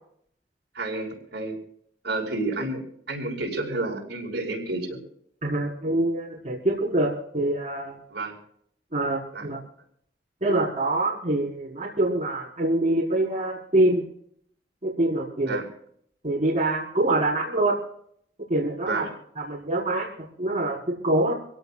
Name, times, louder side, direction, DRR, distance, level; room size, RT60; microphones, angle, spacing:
voice 1, 0.7-1.6 2.0-5.0 8.1-8.4 9.3-9.5 15.4-15.7 18.8-19.1, right 2 dB, 65° right, 0 dB, 5.8 m, -30 dB
voice 2, 5.4-8.0 8.9-9.6 10.4-14.0 14.8-15.6 16.2-17.8 18.5-19.1 19.4-21.3, right 1 dB, 40° right, -6 dB, 4.7 m, -25 dB
27.0 x 17.5 x 2.4 m, 0.67 s
head